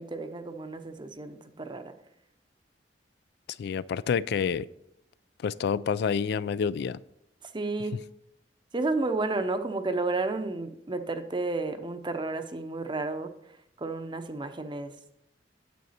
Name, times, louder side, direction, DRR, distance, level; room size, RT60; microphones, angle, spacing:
voice 1, 0.0-1.9 7.4-8.0 8.7-14.9, right 3 dB, 25° right, 9 dB, 0.7 m, -32 dB
voice 2, 3.6-4.7 5.4-7.0, left 6 dB, 65° left, 19 dB, 0.3 m, -28 dB
9.4 x 7.7 x 4.2 m, 0.78 s
head